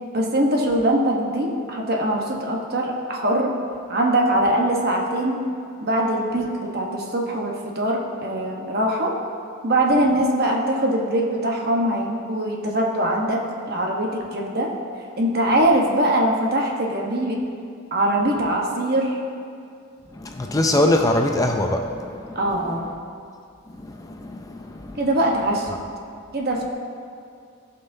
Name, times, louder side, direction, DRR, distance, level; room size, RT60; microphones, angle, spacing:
voice 1, 0.1-3.6 3.9-5.4 5.8-9.2 9.6-13.4 13.7-14.7 15.2-17.4 17.9-19.2 22.3-22.9 25.0-25.8 26.3-26.7, right 1 dB, 50° right, 0 dB, 1.1 m, -22 dB
voice 2, 20.1-22.7 23.8-25.0, left 1 dB, 15° left, 3 dB, 0.4 m, -23 dB
16.5 x 5.6 x 2.7 m, 2.3 s
head